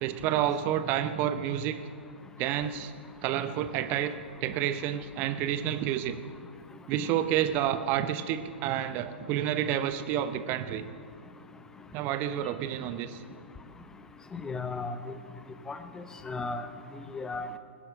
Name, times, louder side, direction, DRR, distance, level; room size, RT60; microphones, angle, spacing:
voice 1, 0.0-1.8 2.4-2.9 3.2-4.1 4.4-6.2 6.9-10.9 11.9-13.2, right 11 dB, 30° right, 11 dB, 0.8 m, -29 dB
voice 2, 14.3-15.2 15.7-16.7 17.1-17.6, left 3 dB, 10° left, 11 dB, 0.8 m, -35 dB
20.0 x 10.5 x 6.4 m, 2.3 s
figure-of-eight pair, 110°, 6 cm